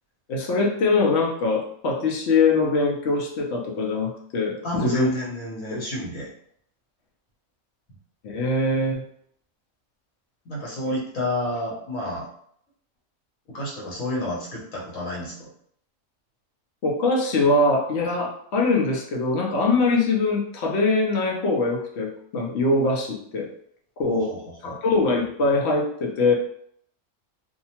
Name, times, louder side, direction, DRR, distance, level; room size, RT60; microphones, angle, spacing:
voice 1, 0.3-5.1 5.7-5.8 8.2-9.0 16.8-23.5 24.0-24.3 24.6-26.3, left 3 dB, 65° left, 0 dB, 0.9 m, -22 dB
voice 2, 4.6-6.3 10.4-12.3 13.5-15.5 24.1-24.8, left 1 dB, 80° left, -5 dB, 1.4 m, -30 dB
2.7 x 2.2 x 2.8 m, 0.66 s
omnidirectional pair, 1.4 m